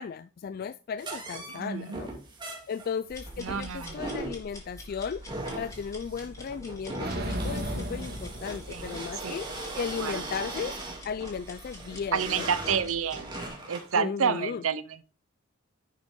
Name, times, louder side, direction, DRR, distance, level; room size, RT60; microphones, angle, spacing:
voice 1, 0.0-2.1 2.7-5.2 5.5-9.5 9.8-10.8 11.0-12.5 13.9-14.6, left 6 dB, 45° left, 0.3 m, -35 dB
sound 1, 1.0-13.9, right 2 dB, 20° right, 2.8 m, -39 dB
voice 2, 1.5-2.0 3.4-4.0 8.7-9.4 9.7-10.2 12.1-13.3 13.7-15.0, right 6 dB, 75° right, 0.6 m, -30 dB
sound 2, 3.1-13.5, equal, 15° left, 3.3 m, -47 dB
sound 3, 7.0-9.2, equal, 50° right, 2.0 m, -34 dB
11.0 x 6.4 x 3.7 m
head